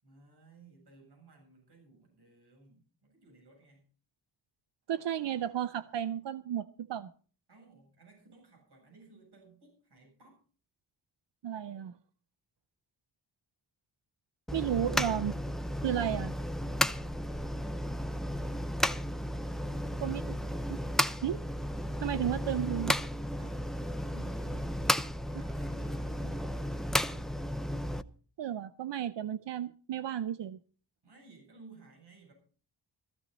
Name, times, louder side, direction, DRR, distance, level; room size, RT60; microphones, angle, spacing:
voice 1, 0.0-3.9 7.5-10.4 16.9-18.8 23.3-23.7 24.0-25.0 25.3-26.8 31.0-32.3, right 3 dB, 65° right, 7.9 m, -57 dB
voice 2, 4.9-7.1 11.4-11.9 14.5-15.4 15.8-16.3 20.0-20.4 20.7-20.8 21.2-21.4 22.0-23.0 28.4-30.6, right 10 dB, 80° right, 0.7 m, -33 dB
sound 1, 14.5-28.0, equal, ahead, 0.6 m, -33 dB
16.0 x 15.0 x 4.1 m
wide cardioid pair, 120°, 42 cm